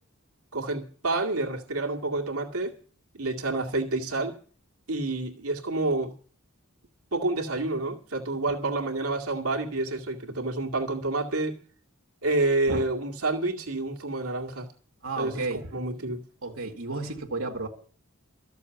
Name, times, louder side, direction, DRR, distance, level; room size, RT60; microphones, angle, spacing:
voice 1, 0.5-2.7 3.1-4.4 4.9-6.1 7.1-11.6 12.2-14.7 15.2-16.2, right 2 dB, 90° right, 2.2 m, -28 dB
voice 2, 15.0-15.6 16.4-17.7, right 3 dB, 70° right, 2.3 m, -32 dB
14.0 x 6.9 x 10.0 m
head